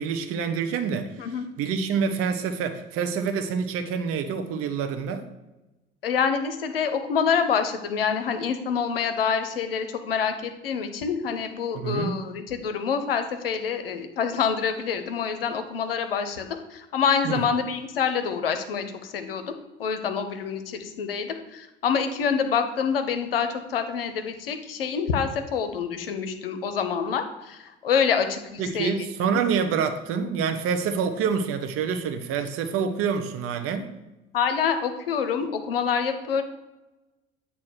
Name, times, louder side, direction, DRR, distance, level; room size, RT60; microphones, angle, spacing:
voice 1, 0.0-1.3 1.6-5.3 11.7-12.2 17.2-17.4 28.6-33.9, right 6 dB, 50° right, 7 dB, 0.9 m, -27 dB
voice 2, 6.0-19.5 19.8-29.0 29.3-29.4 34.3-36.4, left 6 dB, 75° left, 8 dB, 0.7 m, -26 dB
8.4 x 2.9 x 6.3 m, 1.0 s
figure-of-eight pair, 60°, 29 cm